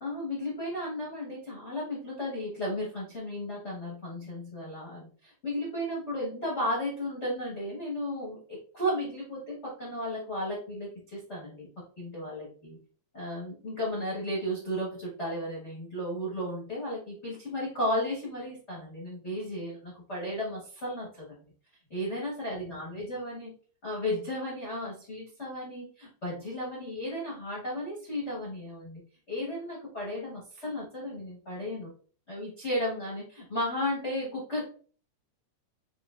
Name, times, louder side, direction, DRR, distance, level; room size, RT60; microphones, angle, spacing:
voice 1, 0.0-11.7 12.0-12.8 13.1-21.3 21.9-23.5 23.8-29.0 29.3-31.9 32.3-34.6, left 1 dB, 90° left, -6 dB, 0.6 m, -34 dB
6.5 x 2.2 x 2.4 m, 0.42 s
omnidirectional pair, 3.6 m